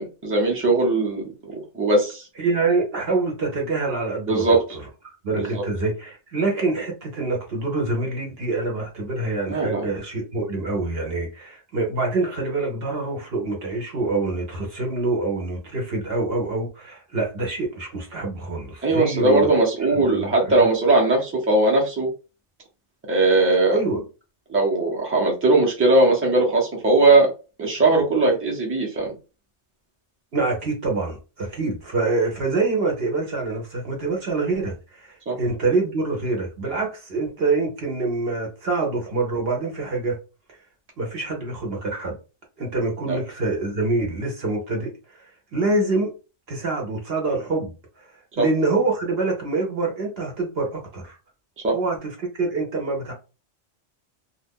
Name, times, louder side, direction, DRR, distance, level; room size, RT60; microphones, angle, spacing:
voice 1, 0.0-1.3 1.7-2.3 4.3-4.6 5.3-5.5 9.5-9.9 18.8-22.1 23.1-23.8 24.5-27.3 27.6-29.1 35.3-35.4 43.1-43.2 48.4-48.5 51.6-51.8, right 2 dB, 10° right, 0.8 m, -19 dB
voice 2, 2.4-19.5 19.9-20.4 23.7-24.0 27.9-28.0 30.3-40.2 41.0-42.2 42.6-45.3 45.5-46.1 46.5-47.7 48.0-48.1 48.4-51.2 51.7-53.1, right 3 dB, 60° right, 1.1 m, -26 dB
2.5 x 2.4 x 3.5 m
omnidirectional pair, 1.2 m